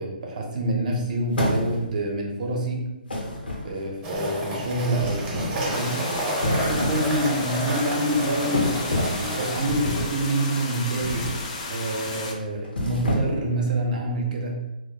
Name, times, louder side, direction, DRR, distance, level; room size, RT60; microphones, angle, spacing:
voice 1, 0.0-2.9 3.6-6.0 6.4-11.3 11.7-14.6, right 1 dB, 55° right, 1 dB, 0.6 m, -27 dB
sound 1, 1.3-2.0 3.1-4.0 5.0-5.7 6.3-7.1 7.4-7.7 8.5-9.3 9.7-10.2 11.0-11.5 11.8-12.1 12.6-13.5, left 1 dB, 90° left, 0.6 m, -28 dB
sound 2, 4.0-9.6, equal, 20° right, 0.6 m, -30 dB
sound 3, 5.7-12.3, left 3 dB, 40° left, 0.4 m, -34 dB
2.2 x 2.1 x 2.7 m, 1.0 s
hypercardioid pair, 145°, 5 cm